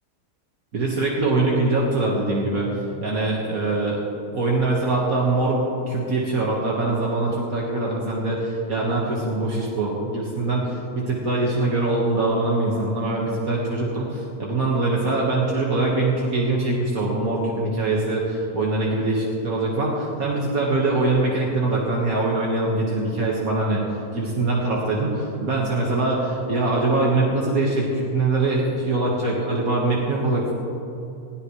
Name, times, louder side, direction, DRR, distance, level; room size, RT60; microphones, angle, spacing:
voice 1, 0.7-4.0 4.3-23.8 24.1-30.5, right 2 dB, 70° right, -3 dB, 2.1 m, -23 dB
20.0 x 15.5 x 3.2 m, 2.8 s
omnidirectional pair, 1.6 m